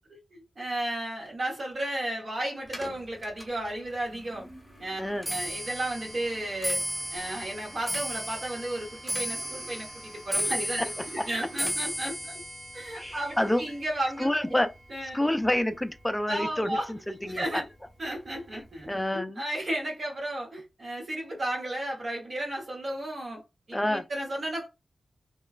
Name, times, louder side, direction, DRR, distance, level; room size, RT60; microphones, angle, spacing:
voice 1, 0.3-4.5 4.8-5.0 5.3-6.8 7.1-10.8 11.3-12.4 12.7-14.5 14.9-15.2 16.3-16.9 17.3-17.7 18.0-23.4 23.7-24.7, right 1 dB, 55° right, 0.9 m, -33 dB
Clock, 2.7-16.0 16.3-16.8 17.6-17.7 18.0-18.4 18.7-18.8, equal, 10° right, 1.0 m, -36 dB
voice 2, 10.8-11.3 11.6-11.7 13.0-13.6 14.2-14.7 15.1-17.6 18.9-19.4 23.7-24.0, left 1 dB, 10° left, 0.3 m, -28 dB
3.0 x 2.2 x 2.3 m
wide cardioid pair, 90°, 0 cm